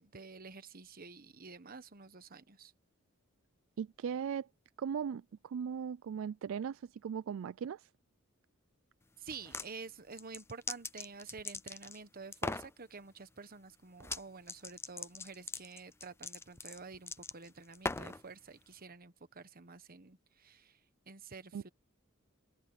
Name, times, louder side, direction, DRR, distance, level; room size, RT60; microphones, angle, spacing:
voice 1, 0.0-2.7 9.2-20.8 21.1-21.7, right 4 dB, 45° right, 1.2 m, -49 dB
voice 2, 3.8-4.5 4.8-7.9 21.5-21.6, right 7 dB, 70° right, 0.3 m, -38 dB
sound 1, 9.3-9.7 10.2-12.0 12.3-12.7 14.0-14.2 14.5-18.2, left 3 dB, 10° left, 0.5 m, -40 dB
head